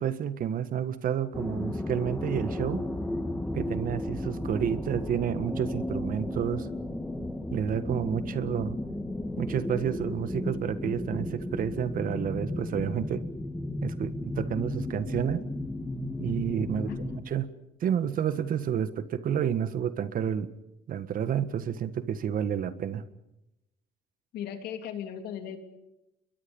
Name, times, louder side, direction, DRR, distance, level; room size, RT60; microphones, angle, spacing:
voice 1, 0.0-2.8 3.5-6.7 7.5-8.8 9.4-13.2 13.8-15.4 16.2-16.9 17.3-17.5 17.8-20.5 20.9-23.0, right 9 dB, 55° right, 12 dB, 1.6 m, -30 dB
sound 1, 1.3-17.2, left 1 dB, 5° left, 3.0 m, -34 dB
voice 2, 16.7-17.2 24.3-25.6, left 9 dB, 75° left, 6 dB, 3.2 m, -38 dB
29.5 x 22.0 x 5.5 m, 0.90 s
cardioid pair, 110°, 17 cm